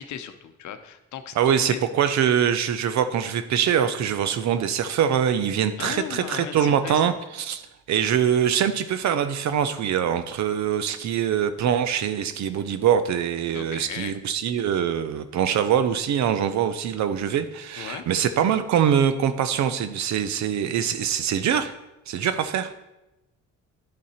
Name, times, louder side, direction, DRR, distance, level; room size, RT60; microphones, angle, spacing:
voice 1, 0.0-1.8 5.8-7.2 13.5-14.2 17.8-18.1 22.2-22.4, left 9 dB, 70° left, 9 dB, 0.7 m, -37 dB
voice 2, 1.4-7.6 7.9-21.7 22.1-22.7, right 8 dB, 65° right, 11 dB, 0.7 m, -23 dB
10.5 x 3.7 x 4.2 m, 0.94 s
cardioid pair, 90°, 30 cm